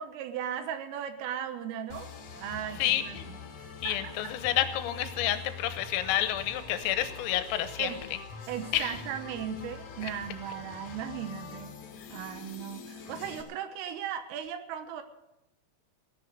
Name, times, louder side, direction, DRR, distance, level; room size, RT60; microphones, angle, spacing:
voice 1, 0.0-2.1 2.4-3.4 3.8-4.1 7.8-8.0 8.5-11.7 12.1-15.0, right 9 dB, 85° right, 8 dB, 3.7 m, -37 dB
sound 1, 1.9-13.4, left 5 dB, 55° left, 3.8 m, -44 dB
voice 2, 2.8-3.3 3.8-8.0 8.7-9.0, left 12 dB, 90° left, 10 dB, 3.6 m, -29 dB
17.0 x 11.0 x 6.6 m, 0.92 s
omnidirectional pair, 5.9 m